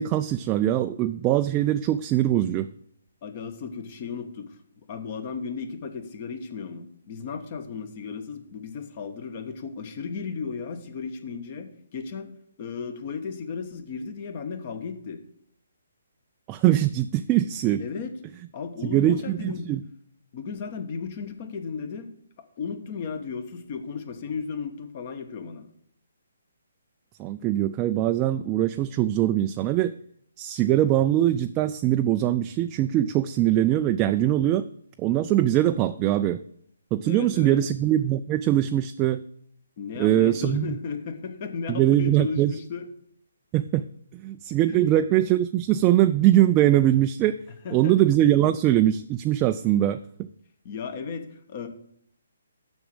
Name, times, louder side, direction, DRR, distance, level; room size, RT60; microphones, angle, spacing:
voice 1, 0.0-2.7 16.5-17.8 18.9-19.8 27.2-29.9 30.4-34.7 35.0-36.4 36.9-39.2 40.0-40.8 41.7-42.5 43.5-43.8 44.1-47.4 47.7-50.0, right 13 dB, 20° right, 8 dB, 0.3 m, -22 dB
voice 2, 3.2-4.6 4.9-12.3 12.6-15.2 17.8-18.1 18.5-19.7 20.3-22.1 22.4-25.7 37.1-37.6 39.8-42.9 44.7-44.8 47.6-48.0 50.6-51.7, left 5 dB, 40° left, 9 dB, 1.2 m, -35 dB
7.0 x 6.1 x 7.0 m, 0.66 s
hypercardioid pair, 155°, 0 cm